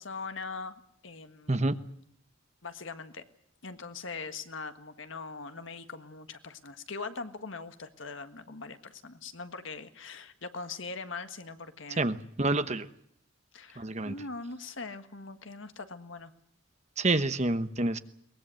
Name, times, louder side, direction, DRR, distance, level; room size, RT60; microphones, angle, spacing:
voice 1, 0.0-1.7 2.6-3.2 3.6-12.2 13.5-16.3, left 4 dB, 70° left, 9 dB, 1.6 m, -41 dB
voice 2, 12.0-12.9 13.8-14.1 17.0-18.0, right 2 dB, 35° right, 11 dB, 1.1 m, -28 dB
22.5 x 20.0 x 7.8 m, 0.70 s
head